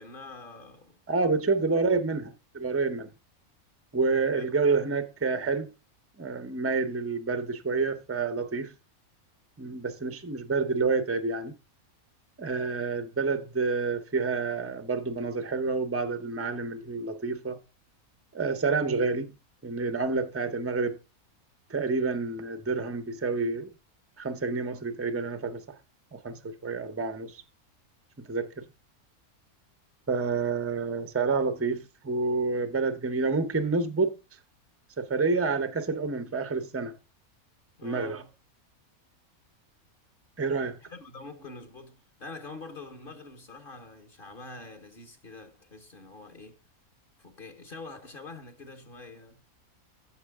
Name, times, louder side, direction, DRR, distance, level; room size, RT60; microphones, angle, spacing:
voice 1, 0.0-1.0 1.5-1.6 4.3-4.5 37.8-38.3 40.8-46.6 47.2-49.4, left 3 dB, 40° left, 1.2 m, -45 dB
voice 2, 1.1-3.1 3.9-5.7 6.2-8.7 9.6-11.5 12.4-17.6 18.3-19.3 19.6-21.0 21.7-23.7 24.2-25.6 26.1-27.4 28.3-28.6 30.1-34.2 35.0-36.9 37.8-38.2 40.4-40.8, right 4 dB, 15° right, 0.6 m, -28 dB
12.0 x 7.4 x 3.6 m
omnidirectional pair, 1.5 m